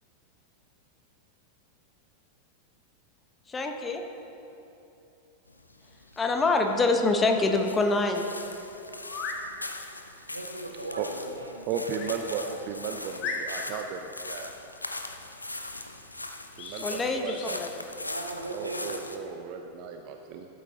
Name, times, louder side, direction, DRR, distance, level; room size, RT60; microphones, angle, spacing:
voice 1, 3.5-4.0 6.2-8.2 16.8-17.7, left 3 dB, 15° left, 4 dB, 0.9 m, -25 dB
sound 1, 5.5-19.2, left 2 dB, 85° left, 0.6 m, -41 dB
sound 2, 8.1-8.2 9.0-9.4 11.9-12.2 12.7-12.8 13.2-13.8 16.5-16.8 17.2-17.5, left 4 dB, 40° left, 1.2 m, -36 dB
voice 2, 10.3-11.7 12.4-12.7 18.0-18.9, right 2 dB, 80° right, 3 dB, 1.0 m, -38 dB
voice 3, 11.7-14.5 16.6-17.6 18.5-20.5, right 6 dB, 45° right, 4 dB, 0.6 m, -35 dB
13.0 x 8.3 x 3.9 m, 2.9 s
figure-of-eight pair, 90°, 0 cm